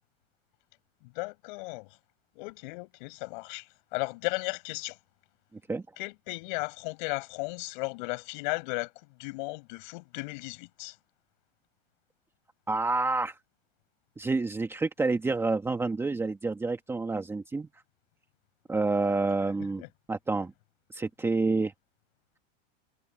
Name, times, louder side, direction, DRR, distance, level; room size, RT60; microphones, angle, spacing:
voice 1, 1.1-2.0 2.4-5.0 6.0-8.9 9.2-10.9 19.8-19.9, left 27 dB, 55° left, 7.5 m, -35 dB
voice 2, 12.7-13.4 14.2-17.7 18.7-19.8 20.1-20.5 20.9-21.7, right 3 dB, 10° right, 1.6 m, -28 dB
supercardioid pair, 155°, 29 cm